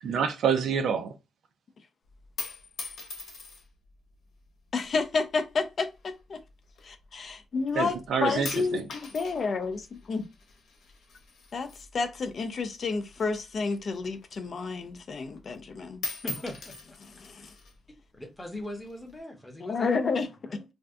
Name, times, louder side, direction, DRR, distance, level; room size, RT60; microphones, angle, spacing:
voice 1, 0.0-1.1 7.7-8.8, right 6 dB, 70° right, 0.5 m, -27 dB
sound 1, 2.1-3.9 4.7-5.1 6.0-7.3 7.7-8.1 8.5-12.5 12.8-14.5 14.9-15.0 15.3-15.7 15.9-17.8 18.5-19.2, left 3 dB, 80° left, 0.8 m, -42 dB
voice 2, 4.7-6.4 6.8-8.0 8.2-10.3 11.5-16.0 17.2-17.5 19.6-20.3, left 4 dB, 40° left, 0.4 m, -30 dB
voice 3, 16.2-17.0 18.1-20.6, left 1 dB, 10° left, 0.7 m, -40 dB
2.5 x 2.2 x 3.4 m
wide cardioid pair, 165°, 0 cm